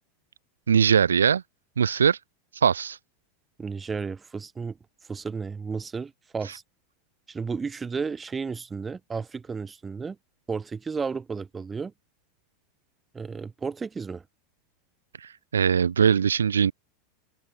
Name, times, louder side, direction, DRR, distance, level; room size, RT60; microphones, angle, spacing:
voice 1, 0.7-1.4 1.8-2.2 2.5-3.0 15.2-16.7, right 7 dB, 90° right, 0.3 m, -21 dB
voice 2, 3.6-4.8 5.1-6.6 7.3-10.2 10.5-11.9 13.1-14.2, right 5 dB, 20° right, 3.1 m, -33 dB
open air
hypercardioid pair, 90°, 0 cm